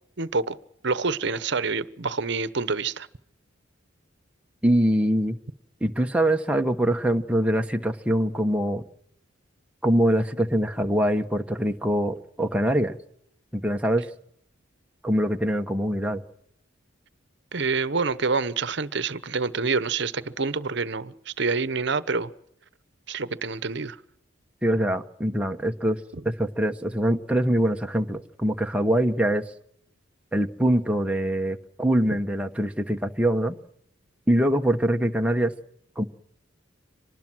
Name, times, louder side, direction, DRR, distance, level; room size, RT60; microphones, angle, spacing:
voice 1, 0.2-0.6 0.8-3.1 17.5-22.3 23.1-24.0 26.1-26.2, right 4 dB, 60° right, 1.0 m, -27 dB
voice 2, 4.6-5.4 5.8-8.8 9.8-13.0 13.5-14.0 15.0-16.2 24.6-26.0 26.2-29.4 30.3-33.6 34.3-35.5 36.0-36.1, right 1 dB, 5° right, 1.0 m, -23 dB
25.5 x 20.0 x 6.2 m
head